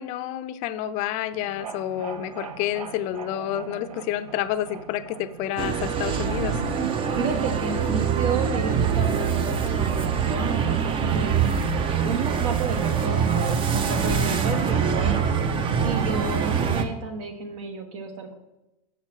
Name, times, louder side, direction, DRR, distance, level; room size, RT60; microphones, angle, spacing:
voice 1, 0.0-6.6, left 12 dB, 40° left, 13 dB, 0.5 m, -29 dB
sound 1, 1.3-7.4, right 6 dB, 90° right, 0.6 m, -42 dB
sound 2, 5.6-16.8, right 6 dB, 25° right, 0.6 m, -24 dB
voice 2, 7.2-15.2 15.8-18.3, right 4 dB, 60° right, 6 dB, 1.3 m, -32 dB
6.5 x 6.0 x 4.4 m, 0.97 s
hypercardioid pair, 120°, 19 cm